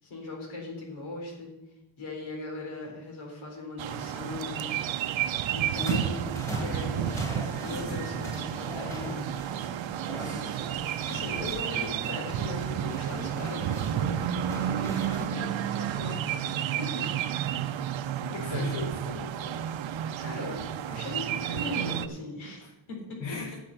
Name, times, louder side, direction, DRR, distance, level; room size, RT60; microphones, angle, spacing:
voice 1, 0.0-1.5 2.0-5.0 5.5-9.3 10.1-10.5 11.1-16.2 16.7-17.2 18.3-18.7 20.2-23.2, left 2 dB, 90° left, -1 dB, 4.0 m, -39 dB
sound 1, 3.8-22.1, right 10 dB, 75° right, 0.7 m, -31 dB
sound 2, 5.7-15.3, equal, 5° left, 1.9 m, -40 dB
sound 3, 10.2-17.5, right 6 dB, 35° right, 0.9 m, -50 dB
voice 2, 18.2-19.7 23.2-23.5, left 3 dB, 70° left, 1 dB, 1.5 m, -37 dB
10.0 x 7.4 x 6.6 m, 0.89 s
cardioid pair, 95°, 47 cm